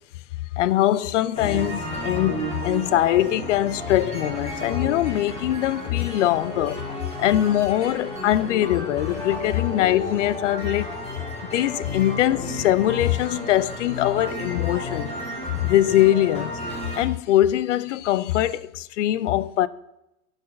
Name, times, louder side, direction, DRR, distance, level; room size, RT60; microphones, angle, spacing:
voice 1, 0.6-6.8 7.2-10.9 11.4-15.2 15.5-16.6 17.0-19.7, left 13 dB, 55° left, 0.5 m, -22 dB
sound 1, 1.4-17.0, left 1 dB, 15° left, 3.6 m, -33 dB
11.0 x 4.1 x 6.8 m
hypercardioid pair, 130°, 46 cm